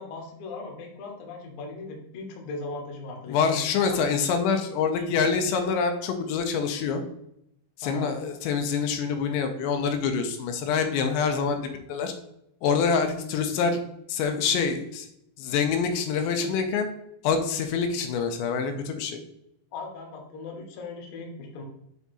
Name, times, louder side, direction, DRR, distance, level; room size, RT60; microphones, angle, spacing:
voice 1, 0.0-3.6 3.9-4.0 4.8-5.2 7.8-8.1 19.7-21.6, left 3 dB, 70° left, 1 dB, 1.8 m, -38 dB
voice 2, 3.3-7.0 7.8-12.1 12.6-13.8 14.1-15.1 15.4-16.9 17.2-19.2, left 5 dB, 90° left, 6 dB, 3.0 m, -26 dB
7.3 x 3.5 x 4.1 m, 0.76 s
omnidirectional pair, 5.2 m